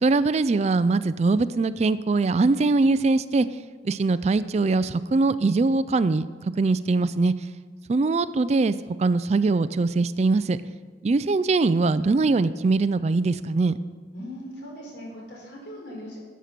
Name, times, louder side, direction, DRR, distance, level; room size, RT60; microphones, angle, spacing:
voice 1, 0.0-3.5 3.8-6.3 6.6-7.3 7.9-10.6 11.0-13.8, right 3 dB, 35° right, 15 dB, 0.3 m, -22 dB
voice 2, 14.1-16.2, equal, 75° left, -2 dB, 4.3 m, -39 dB
12.0 x 8.2 x 5.9 m, 1.5 s
head